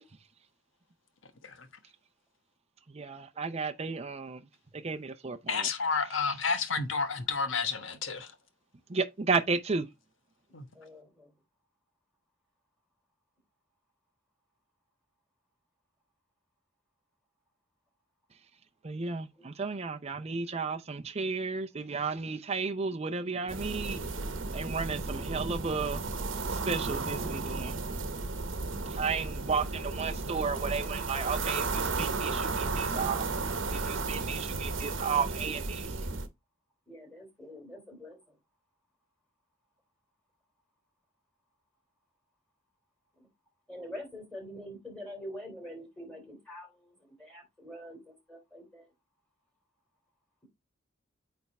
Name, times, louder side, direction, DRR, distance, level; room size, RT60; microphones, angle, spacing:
voice 1, 2.9-4.4 4.7-5.7 8.9-9.9 18.8-24.2 24.5-28.2 28.8-36.2, right 4 dB, 35° right, 0.6 m, -33 dB
voice 2, 5.5-8.3 10.5-10.6, left 5 dB, 75° left, 1.2 m, -30 dB
voice 3, 6.1-6.5 10.7-11.3 19.4-19.5 36.9-38.2 43.7-48.8, equal, 5° left, 3.6 m, -45 dB
sound 1, 23.5-36.3, right 3 dB, 75° right, 1.0 m, -34 dB
8.8 x 3.5 x 4.2 m
head